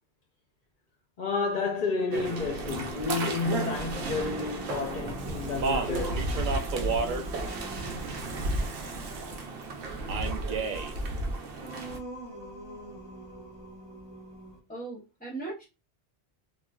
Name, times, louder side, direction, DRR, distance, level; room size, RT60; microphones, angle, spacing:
voice 1, 1.2-6.4, left 4 dB, 55° left, 0.6 m, -31 dB
sound 1, 2.1-12.0, right 2 dB, 80° right, 0.9 m, -34 dB
Singing, 3.0-14.6, right 2 dB, 35° right, 0.9 m, -46 dB
Speech, 5.2-9.3 10.1-10.9, right 5 dB, 60° right, 0.6 m, -33 dB
voice 2, 14.7-15.6, right 3 dB, 10° left, 0.7 m, -38 dB
3.1 x 2.3 x 2.2 m
omnidirectional pair, 1.1 m